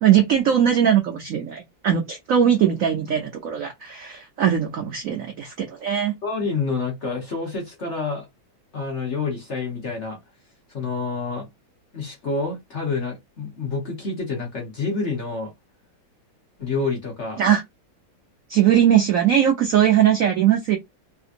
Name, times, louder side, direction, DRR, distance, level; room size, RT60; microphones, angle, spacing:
voice 1, 0.0-6.1 17.4-17.6 18.5-20.8, right 9 dB, 85° right, 0.7 m, -20 dB
voice 2, 6.2-8.3 8.7-10.2 10.7-11.5 11.9-15.5 16.6-17.4, left 4 dB, 50° left, 0.9 m, -28 dB
3.2 x 2.8 x 2.5 m
omnidirectional pair, 2.2 m